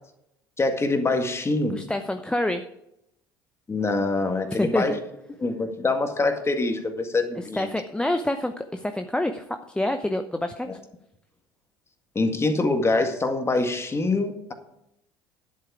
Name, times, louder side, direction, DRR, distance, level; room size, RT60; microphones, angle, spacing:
voice 1, 0.6-1.8 3.7-5.0 5.4-7.7 10.7-10.8 12.2-14.5, left 3 dB, 25° left, 6 dB, 1.9 m, -24 dB
voice 2, 1.7-2.6 4.5-4.8 7.5-10.7, left 1 dB, 10° left, 7 dB, 0.8 m, -27 dB
10.5 x 8.2 x 4.9 m, 0.82 s
hypercardioid pair, 65°, 11 cm